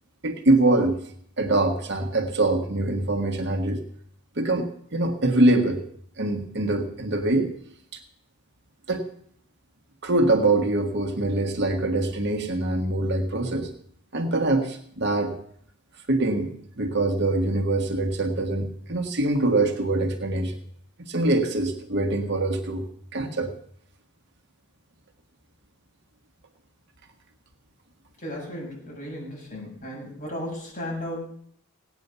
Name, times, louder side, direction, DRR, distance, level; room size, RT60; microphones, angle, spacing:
voice 1, 0.2-1.0 1.4-3.8 4.4-5.8 6.2-7.5 7.9-8.0 8.9-9.1 10.0-13.7 14.1-15.4 16.1-20.6 21.0-22.9 23.1-23.5, right 2 dB, 50° right, 5 dB, 1.5 m, -24 dB
voice 2, 28.2-31.3, left 1 dB, 40° left, -3 dB, 7.0 m, -35 dB
17.5 x 9.5 x 6.8 m, 0.63 s
head